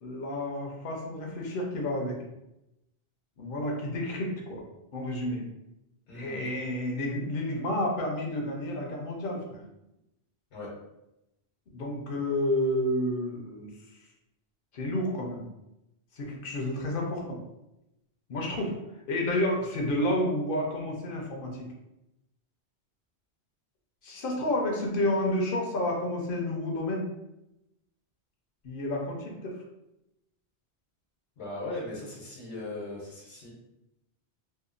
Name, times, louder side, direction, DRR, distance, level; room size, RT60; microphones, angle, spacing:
voice 1, 0.0-2.2 3.4-4.6 4.9-5.4 6.1-9.6 11.7-13.7 14.7-15.4 16.1-17.4 18.3-18.7 19.1-21.7 24.0-27.1 28.6-29.6, left 1 dB, 60° left, 0 dB, 0.7 m, -30 dB
voice 2, 6.1-6.4 10.5-10.7 31.4-33.5, left 2 dB, 85° left, -4 dB, 1.1 m, -38 dB
2.8 x 2.2 x 2.4 m, 0.91 s
omnidirectional pair, 1.1 m